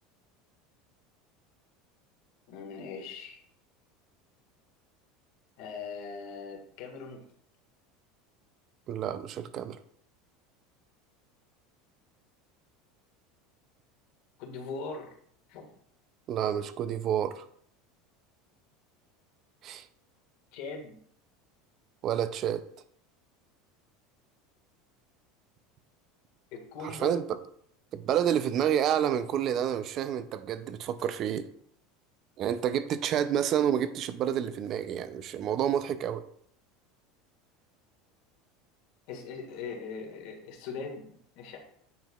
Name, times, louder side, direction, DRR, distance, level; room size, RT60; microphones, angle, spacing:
voice 1, 2.5-3.4 5.6-7.2 14.4-15.1 15.5-15.7 20.5-21.0 26.5-27.2 39.1-41.6, left 4 dB, 65° left, 1.7 m, -40 dB
voice 2, 8.9-9.8 16.3-17.4 19.6-19.8 22.0-22.6 26.8-27.4 27.9-31.4 32.4-36.2, right 9 dB, 40° right, 0.5 m, -29 dB
9.2 x 4.5 x 2.4 m
supercardioid pair, 135°, 0 cm